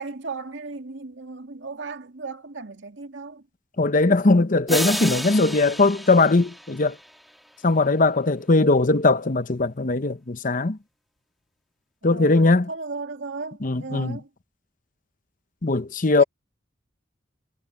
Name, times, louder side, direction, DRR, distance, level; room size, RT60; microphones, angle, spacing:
voice 1, 0.0-3.4 12.0-14.3 16.2-16.3, right 3 dB, 80° right, 2.2 m, -35 dB
voice 2, 3.8-7.0 7.6-10.8 12.0-12.7 13.6-14.2 15.6-16.2, left 3 dB, 45° left, 0.9 m, -20 dB
sound 1, 4.7-7.5, equal, ahead, 2.7 m, -32 dB
head